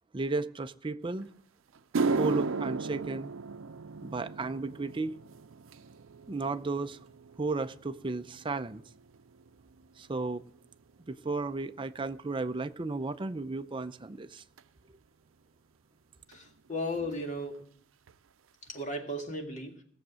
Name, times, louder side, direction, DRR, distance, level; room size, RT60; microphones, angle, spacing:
voice 1, 0.1-1.3 2.2-3.3 4.0-5.2 6.3-7.0 7.4-8.8 10.0-10.4 11.1-14.4, right 3 dB, 25° right, 0.5 m, -34 dB
sound 1, 1.2-1.3 1.7-10.3 10.5-11.0 11.7-11.8 14.6-14.7 16.3-16.4 16.6-16.8 17.1-17.6 18.1-18.2 18.7-18.8, right 4 dB, 90° right, 0.5 m, -36 dB
voice 2, 16.3-17.6 18.7-19.8, left 1 dB, 40° left, 2.0 m, -35 dB
17.5 x 7.2 x 6.3 m
head